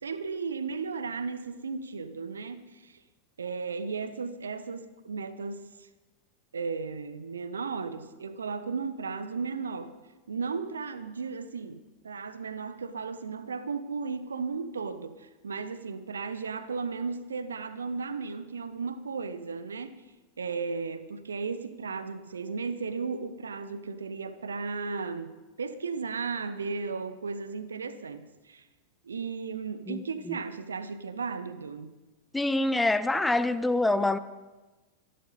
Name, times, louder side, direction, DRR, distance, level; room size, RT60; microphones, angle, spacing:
voice 1, 0.0-3.0 3.4-5.9 6.5-9.9 10.3-20.0 20.4-25.3 25.6-28.6 29.0-31.9, right 5 dB, 70° right, 13 dB, 1.0 m, -35 dB
voice 2, 32.3-34.2, left 2 dB, 5° left, 12 dB, 0.6 m, -25 dB
25.0 x 11.5 x 4.0 m, 1.2 s
figure-of-eight pair, 90°, 0 cm